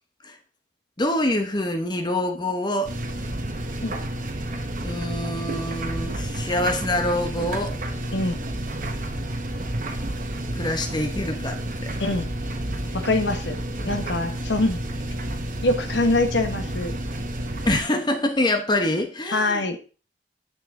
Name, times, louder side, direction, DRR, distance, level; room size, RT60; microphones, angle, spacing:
voice 1, 1.0-2.9 4.8-7.8 10.5-11.9 17.7-19.6, left 1 dB, 25° left, 6 dB, 1.0 m, -25 dB
sound 1, 2.8-17.8, right 1 dB, 45° right, 1.1 m, -30 dB
voice 2, 12.0-12.3 12.9-13.6 13.8-14.8 15.6-16.9 19.3-19.8, left 2 dB, 70° left, 8 dB, 1.2 m, -23 dB
9.9 x 6.8 x 3.7 m, 0.37 s
head